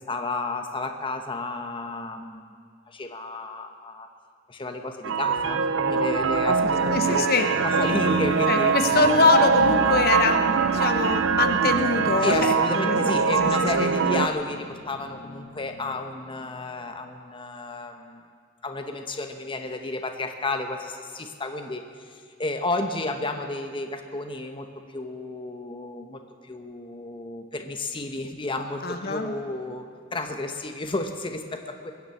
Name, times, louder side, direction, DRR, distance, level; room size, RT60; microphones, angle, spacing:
voice 1, 0.0-2.5 2.9-4.1 4.5-7.3 7.6-8.8 12.2-18.2 18.6-31.9, left 2 dB, 25° left, 5 dB, 0.9 m, -32 dB
sound 1, 5.0-14.3, right 5 dB, 75° right, 0.5 m, -23 dB
voice 2, 6.6-7.5 8.5-13.5 13.8-13.9 28.8-29.3, left 4 dB, 55° left, 6 dB, 0.9 m, -24 dB
sound 2, 7.7-16.6, left 3 dB, 85° left, 1.6 m, -40 dB
21.0 x 7.1 x 8.3 m, 2.2 s
head